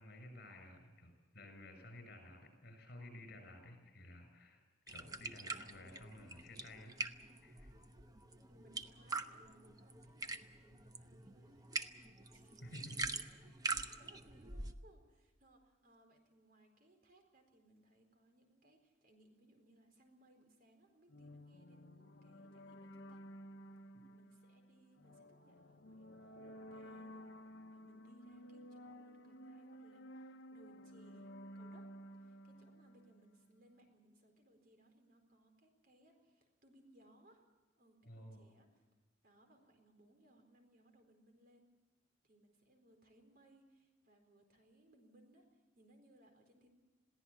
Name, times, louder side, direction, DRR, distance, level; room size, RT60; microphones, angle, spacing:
voice 1, 0.0-6.9 7.3-7.7 12.6-13.6 38.0-38.4, left 1 dB, 60° left, 6 dB, 6.6 m, -54 dB
sound 1, 4.9-14.7, right 3 dB, 20° right, 0.9 m, -45 dB
voice 2, 8.5-11.7 12.3-12.7 13.7-23.2 24.1-26.1 26.4-37.5 37.8-38.9 39.2-41.7 42.2-46.7, right 1 dB, 50° right, 4 dB, 4.3 m, -67 dB
sound 2, 21.1-33.6, equal, 75° left, 1.1 m, -54 dB
22.0 x 16.0 x 8.6 m, 1.2 s
head